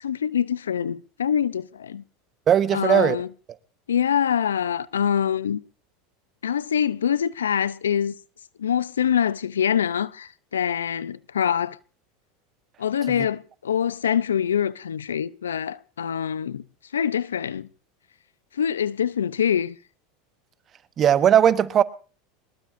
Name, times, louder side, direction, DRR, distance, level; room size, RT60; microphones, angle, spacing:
voice 1, 0.0-2.0 2.7-3.3 3.9-5.6 6.4-8.1 8.6-11.8 12.8-16.6 16.9-17.7 18.5-19.8, left 8 dB, 85° left, 0.7 m, -24 dB
voice 2, 2.5-3.2 21.0-21.8, right 9 dB, 35° right, 1.2 m, -18 dB
23.5 x 20.5 x 2.7 m
hypercardioid pair, 90°, 0 cm